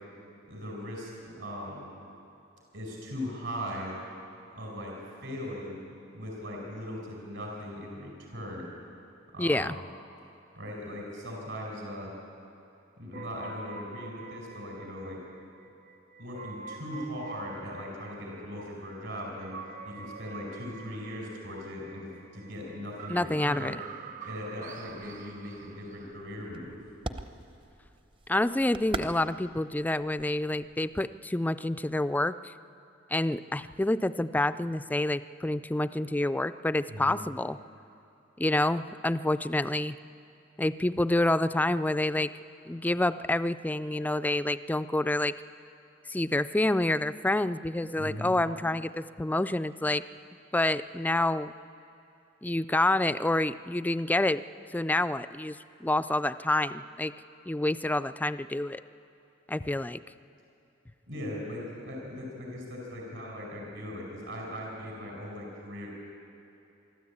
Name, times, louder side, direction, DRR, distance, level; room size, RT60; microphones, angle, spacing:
voice 1, 0.5-1.9 2.7-3.9 4.5-4.9 5.2-5.8 6.1-8.7 9.3-9.9 10.5-12.1 13.0-15.2 16.2-19.5 19.8-22.1 22.3-23.7 24.2-26.8 36.9-37.1 47.9-48.4 61.1-65.9, equal, 70° right, -1 dB, 5.0 m, -39 dB
voice 2, 9.4-9.8 23.1-23.8 28.3-32.5 33.1-37.6 38.4-40.0 40.6-42.3 42.7-45.3 46.1-50.0 50.5-51.5 52.4-54.4 54.7-55.6 55.8-57.1 57.5-58.8 59.5-60.0, left 1 dB, 10° left, 14 dB, 0.4 m, -28 dB
sound 1, 13.1-26.2, right 4 dB, 45° right, 1.0 m, -46 dB
sound 2, 24.9-31.2, right 2 dB, 25° right, 0.8 m, -43 dB
24.0 x 13.5 x 8.5 m, 2.9 s
head